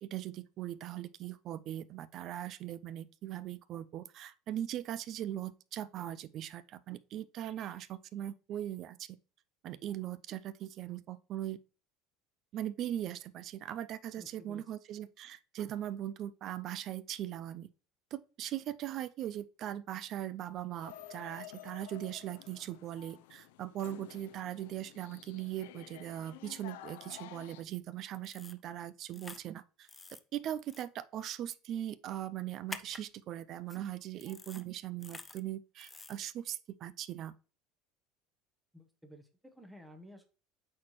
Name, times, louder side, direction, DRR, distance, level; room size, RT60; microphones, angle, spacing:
voice 1, 0.0-9.1 9.6-11.6 12.5-17.7 18.1-29.9 30.3-37.3, right 12 dB, 45° right, 0.4 m, -40 dB
voice 2, 14.2-14.7 38.7-40.3, left 1 dB, 5° right, 1.0 m, -54 dB
sound 1, 20.8-27.6, left 13 dB, 85° left, 0.5 m, -52 dB
sound 2, 28.2-28.6 29.1-29.4 29.9-30.2 30.7-30.8 32.7-33.0 33.7-33.8 34.2-34.6 35.0-35.4 35.8-36.2, left 3 dB, 10° left, 0.5 m, -47 dB
8.5 x 4.3 x 3.1 m
supercardioid pair, 135°, 0 cm